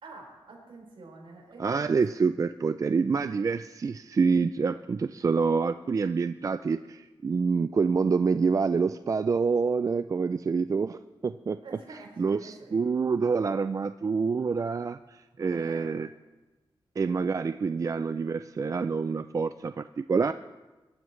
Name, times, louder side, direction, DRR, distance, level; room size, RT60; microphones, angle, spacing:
voice 1, 0.0-2.3 11.5-12.8 15.5-15.9, right 3 dB, 70° right, -2 dB, 4.8 m, -47 dB
voice 2, 1.6-11.6 12.2-16.1 17.0-20.3, right 5 dB, 35° right, 11 dB, 0.3 m, -27 dB
21.5 x 12.0 x 3.2 m, 1.2 s
cardioid pair, 85°, 9 cm